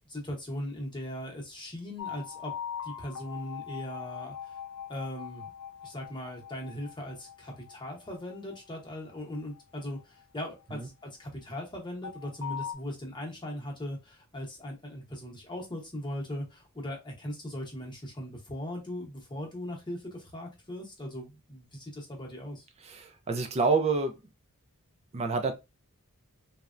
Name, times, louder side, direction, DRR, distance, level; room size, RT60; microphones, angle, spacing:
voice 1, 0.1-2.5 2.8-4.6 4.9-5.5 5.8-22.7, left 1 dB, 20° left, 0.9 m, -39 dB
sound 1, 2.0-11.1 12.0-12.7, left 8 dB, 65° left, 0.5 m, -42 dB
voice 2, 22.8-24.2 25.1-25.5, right 4 dB, 30° right, 0.3 m, -28 dB
3.2 x 2.1 x 2.4 m
head